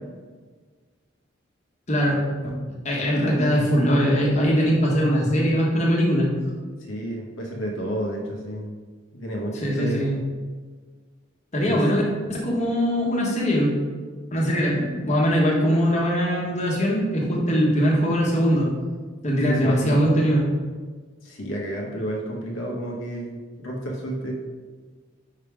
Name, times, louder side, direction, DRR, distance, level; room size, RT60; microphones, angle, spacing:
voice 1, 2.8-6.3 9.6-10.2 11.5-12.0 12.3-13.7 14.3-18.7 19.2-20.5, equal, 35° left, -3 dB, 1.2 m, -21 dB
voice 2, 6.9-8.7 9.1-10.0 11.6-11.8 19.4-20.0 21.2-24.3, right 1 dB, 90° left, -1 dB, 1.0 m, -30 dB
5.6 x 3.5 x 4.8 m, 1.5 s
head